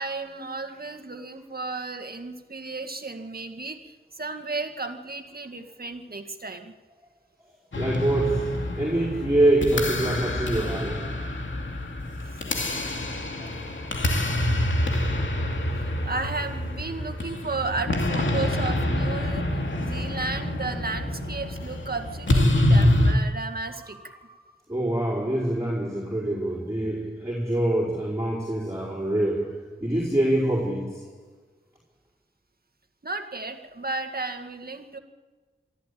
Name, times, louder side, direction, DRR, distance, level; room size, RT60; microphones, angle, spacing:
voice 1, 0.0-6.7 12.2-12.4 15.8-24.0 33.0-35.0, right 3 dB, 50° right, 2.0 m, -34 dB
sound 1, 7.7-23.1, left 1 dB, 75° left, 2.7 m, -26 dB
voice 2, 7.7-11.2 13.4-13.5 24.7-31.0, right 1 dB, 15° right, 5.0 m, -25 dB
24.0 x 13.5 x 8.6 m
wide cardioid pair, 50°, 20 cm